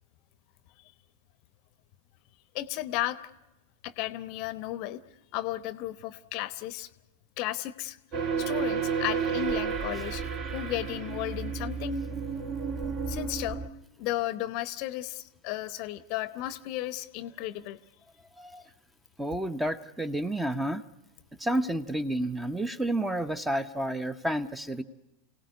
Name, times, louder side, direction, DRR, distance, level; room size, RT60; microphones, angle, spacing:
voice 1, 2.5-3.2 3.8-5.0 5.3-6.9 7.4-8.0 8.4-10.2 10.5-12.0 13.1-13.6 14.0-17.8, left 15 dB, 45° left, 15 dB, 0.8 m, -34 dB
sound 1, 8.1-13.7, right 6 dB, 35° right, 1.6 m, -31 dB
voice 2, 19.2-20.8 21.4-24.8, right 1 dB, 5° right, 13 dB, 0.9 m, -30 dB
27.5 x 17.5 x 9.5 m, 1.0 s
figure-of-eight pair, 90°, 0 cm